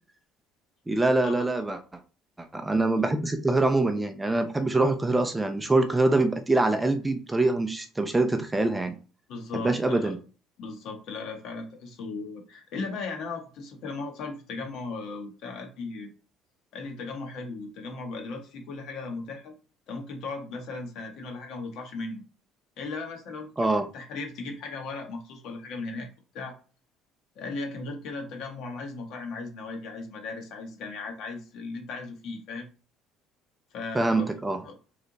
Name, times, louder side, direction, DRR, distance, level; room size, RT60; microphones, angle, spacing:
voice 1, 0.9-1.8 2.4-8.9 9.5-10.2 23.6-23.9 33.9-34.6, right 2 dB, 10° right, 0.4 m, -24 dB
voice 2, 9.3-10.1 10.6-16.1 16.7-19.5 19.9-22.2 22.8-26.1 26.3-26.6 27.4-32.7 33.7-34.3 34.6-34.8, left 3 dB, 65° left, 1.1 m, -37 dB
3.2 x 2.8 x 3.9 m
cardioid pair, 135°, 0 cm